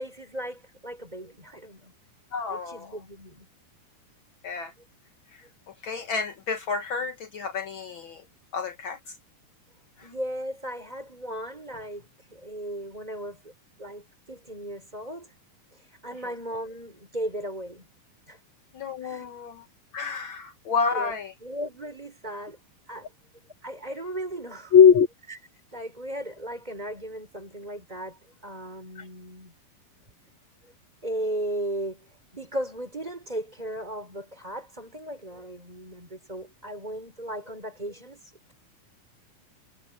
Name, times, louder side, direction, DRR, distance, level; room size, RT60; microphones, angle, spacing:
voice 1, 0.0-1.9 2.5-3.5 10.0-12.0 12.3-13.5 13.8-15.3 16.0-17.9 18.3-18.4 19.0-19.3 20.9-21.1 21.4-22.6 22.9-23.1 23.6-24.7 25.7-29.5 31.0-32.0 32.3-38.2, right 1 dB, 10° right, 5.3 m, -36 dB
voice 2, 2.3-3.0 4.4-4.7 5.3-8.2 8.5-9.1 10.0-10.1 16.2-16.3 18.7-19.7 19.9-21.3 24.7-25.1 28.9-29.1, left 6 dB, 80° left, 1.1 m, -25 dB
omnidirectional pair, 4.0 m